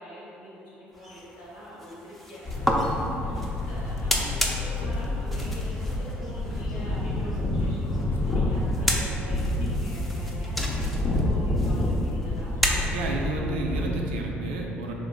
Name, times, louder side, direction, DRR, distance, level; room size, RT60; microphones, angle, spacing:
voice 1, 0.0-12.5, equal, 85° left, -7 dB, 1.0 m, -43 dB
sound 1, 0.9-13.3, equal, ahead, 0.6 m, -33 dB
sound 2, 2.5-13.9, left 1 dB, 40° left, 0.6 m, -28 dB
voice 2, 12.9-14.9, right 3 dB, 80° right, 0 dB, 0.4 m, -31 dB
3.8 x 2.9 x 3.6 m, 2.9 s
hypercardioid pair, 50°, 6 cm